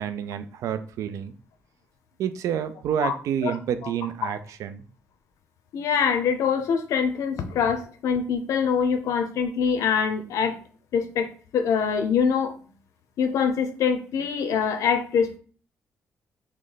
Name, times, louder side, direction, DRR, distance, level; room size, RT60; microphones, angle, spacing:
voice 1, 0.0-1.3 2.2-4.8, right 9 dB, 85° right, 10 dB, 0.4 m, -29 dB
voice 2, 5.7-10.6 10.9-11.3 11.5-12.5 13.2-15.4, left 6 dB, 80° left, 8 dB, 0.7 m, -24 dB
3.2 x 3.1 x 3.9 m, 0.39 s
cardioid pair, 105°, 5 cm